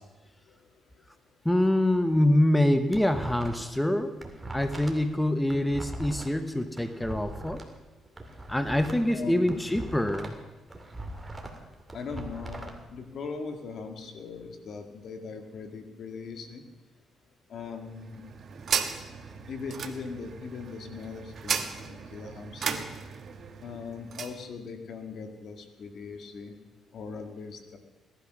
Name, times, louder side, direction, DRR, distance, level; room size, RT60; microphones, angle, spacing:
voice 1, 1.4-4.1 4.5-7.6 8.5-10.4, left 1 dB, 10° left, 9 dB, 1.0 m, -25 dB
sound 1, 2.5-3.8 4.1-7.6 8.1-10.4 10.7-12.7, right 1 dB, 15° right, 2.4 m, -40 dB
voice 2, 9.1-9.7 11.9-16.6 17.5-18.2 19.5-22.9 23.6-26.5 26.9-27.8, left 5 dB, 60° left, 6 dB, 2.1 m, -40 dB
sound 2, 17.8-24.4, right 6 dB, 55° right, 1.4 m, -35 dB
17.5 x 12.0 x 6.3 m, 1.2 s
cardioid pair, 90°, 0 cm